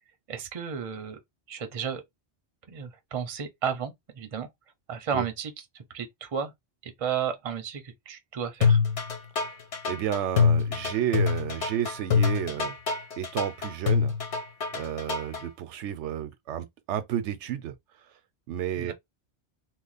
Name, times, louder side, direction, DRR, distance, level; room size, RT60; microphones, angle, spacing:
voice 1, 0.3-1.2 1.5-2.0 2.7-4.5 4.9-6.5 6.8-8.8 18.8-18.9, right 7 dB, 40° right, 0.6 m, -33 dB
sound 1, 8.6-15.4, left 6 dB, 85° left, 1.3 m, -25 dB
voice 2, 9.9-12.8 13.2-14.1 14.7-17.7 18.5-18.9, right 10 dB, 90° right, 0.9 m, -31 dB
3.0 x 2.1 x 3.9 m
omnidirectional pair, 1.2 m